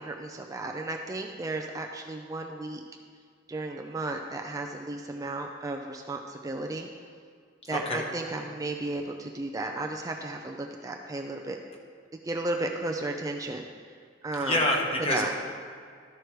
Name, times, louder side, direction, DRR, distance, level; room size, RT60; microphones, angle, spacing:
voice 1, 0.0-2.8 3.5-6.9 7.6-11.6 12.2-13.7 14.2-14.6 15.1-15.3, right 2 dB, 20° right, 2 dB, 0.4 m, -34 dB
voice 2, 7.7-8.0 14.4-15.3, left 1 dB, 30° left, 0 dB, 1.2 m, -27 dB
13.0 x 4.7 x 4.6 m, 2.1 s
head